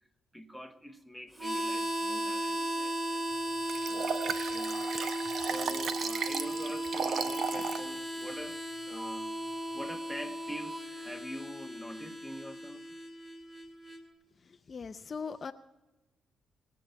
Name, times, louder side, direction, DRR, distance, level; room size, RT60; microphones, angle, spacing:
voice 1, 0.3-4.2 4.5-4.8 5.5-8.6 8.9-9.4 9.7-12.8, equal, 5° right, 1.3 m, -45 dB
Harmonica, 1.3-14.0, right 1 dB, 20° right, 2.8 m, -36 dB
Liquid, 3.7-7.9 8.3-8.4, right 6 dB, 60° right, 0.9 m, -35 dB
voice 2, 14.7-15.5, left 5 dB, 40° left, 0.5 m, -39 dB
22.5 x 8.4 x 5.5 m
cardioid pair, 90°, 0 cm